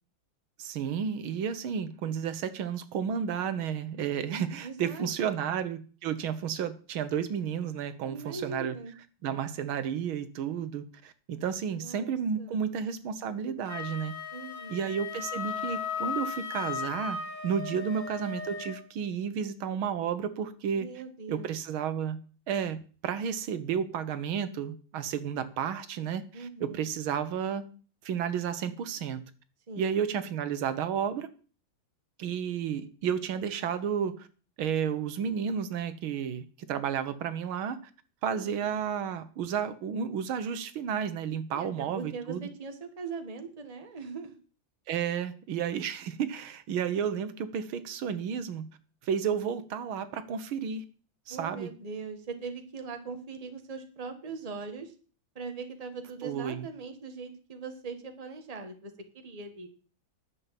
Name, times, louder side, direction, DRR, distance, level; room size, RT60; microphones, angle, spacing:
voice 1, 0.6-8.8 9.2-14.1 14.7-17.2 17.4-20.9 21.3-22.2 22.5-27.6 28.0-29.2 29.8-31.3 32.2-34.3 34.6-37.8 38.2-42.5 44.9-48.7 49.0-50.8 51.3-51.7 56.2-56.7, right 7 dB, 85° right, 12 dB, 1.8 m, -32 dB
voice 2, 4.6-5.5 8.0-8.9 11.8-12.6 14.3-14.9 17.7-18.0 20.7-21.5 26.3-26.8 29.7-30.0 38.3-38.7 41.5-44.4 51.3-54.9 55.3-59.7, right 4 dB, 20° right, 6 dB, 1.3 m, -41 dB
Wind instrument woodwind instrument, 13.6-18.8, left 6 dB, 60° left, 3.7 m, -36 dB
11.0 x 7.0 x 7.5 m, 0.40 s
omnidirectional pair, 2.2 m